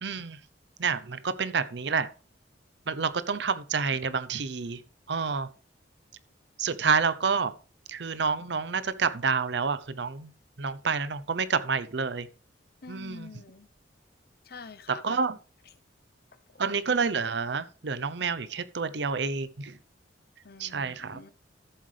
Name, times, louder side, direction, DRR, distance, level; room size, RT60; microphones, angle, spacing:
voice 1, 0.0-0.4 0.8-2.1 2.9-4.8 5.1-5.5 6.6-7.5 7.9-10.3 10.6-12.3 12.9-13.3 14.9-15.4 16.6-19.8 20.6-21.2, right 5 dB, 65° right, 0.7 m, -28 dB
voice 2, 12.8-13.7 14.4-15.2 20.4-21.3, left 4 dB, 55° left, 0.8 m, -46 dB
13.5 x 7.6 x 3.3 m
head